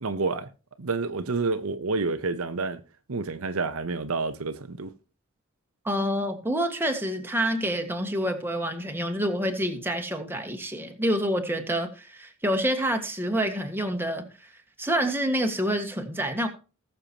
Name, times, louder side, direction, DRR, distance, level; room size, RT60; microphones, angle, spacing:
voice 1, 0.0-0.5 0.8-2.8 3.1-4.9, right 4 dB, 70° right, 0.9 m, -29 dB
voice 2, 5.9-14.5 14.8-16.5, equal, 10° right, 1.7 m, -27 dB
19.5 x 6.8 x 2.9 m
head